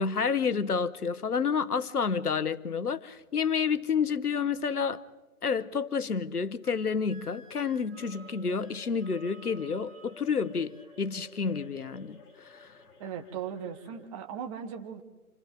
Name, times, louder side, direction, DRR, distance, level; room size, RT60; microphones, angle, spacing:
voice 1, 0.0-5.0 5.4-12.7, left 5 dB, 80° left, 1.1 m, -29 dB
Wind instrument woodwind instrument, 6.6-10.9, right 5 dB, 60° right, 5.0 m, -55 dB
sound 1, 7.9-14.0, left 3 dB, 25° left, 4.3 m, -53 dB
voice 2, 13.0-15.0, right 8 dB, 20° right, 1.5 m, -38 dB
29.0 x 28.0 x 3.9 m
figure-of-eight pair, 140°, 45 cm